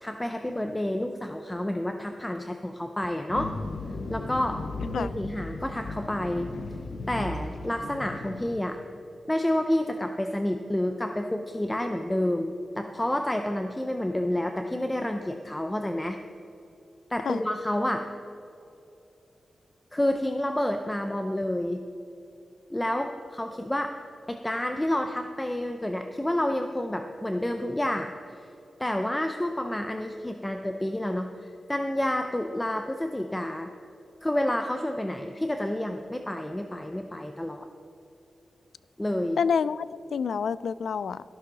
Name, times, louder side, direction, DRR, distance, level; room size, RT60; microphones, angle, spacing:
voice 1, 0.0-3.5 4.1-4.6 4.9-6.5 7.1-8.8 9.3-16.2 17.1-18.0 19.9-21.8 22.7-23.9 24.3-28.1 28.8-33.7 34.2-37.7 39.0-39.4, left 1 dB, 10° left, 5 dB, 0.5 m, -29 dB
sound 1, 3.3-8.6, left 2 dB, 65° left, 1.0 m, -36 dB
voice 2, 39.4-39.9 40.1-41.2, left 6 dB, 85° left, 17 dB, 0.3 m, -27 dB
13.0 x 11.5 x 4.0 m, 2.8 s
wide cardioid pair, 165°, 0 cm